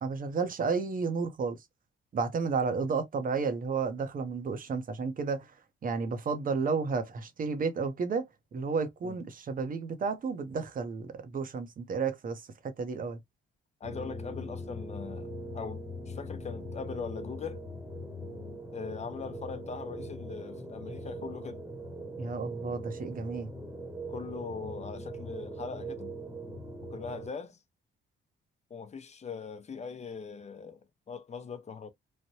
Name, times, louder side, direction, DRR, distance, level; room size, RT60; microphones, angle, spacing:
voice 1, 0.0-1.6 2.1-5.5 5.8-13.2 22.2-23.5, right 5 dB, 45° right, 0.8 m, -32 dB
voice 2, 13.8-17.6 18.7-21.6 24.1-26.1 26.9-27.6 28.7-30.8 31.1-31.9, left 5 dB, 35° left, 0.7 m, -41 dB
sound 1, 13.8-27.3, right 1 dB, 10° right, 1.0 m, -41 dB
3.2 x 2.2 x 2.7 m
cardioid pair, 90°, 20 cm